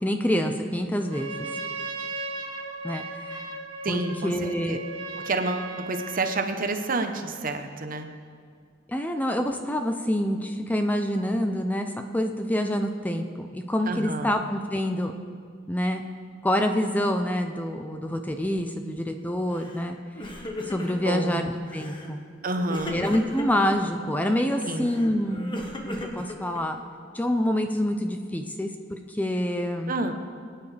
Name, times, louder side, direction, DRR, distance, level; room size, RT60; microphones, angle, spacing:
voice 1, 0.0-1.5 2.8-3.4 3.9-4.8 8.9-15.1 15.7-16.0 16.4-20.0 20.7-22.2 22.9-26.8 27.1-29.9, equal, 10° left, 5 dB, 0.5 m, -27 dB
Trumpet, 1.0-6.5, right 2 dB, 90° right, 1.9 m, -36 dB
voice 2, 3.8-4.8 5.2-8.1 13.9-14.3 21.0-21.4 22.4-23.0 24.6-24.9 29.9-30.1, right 2 dB, 45° right, 7 dB, 0.9 m, -29 dB
Crying sobbing, 19.5-19.9 20.1-21.2 21.7-22.1 22.7-23.7 24.6-26.9, left 1 dB, 25° left, 1.2 m, -37 dB
22.0 x 9.4 x 3.3 m, 2.1 s
head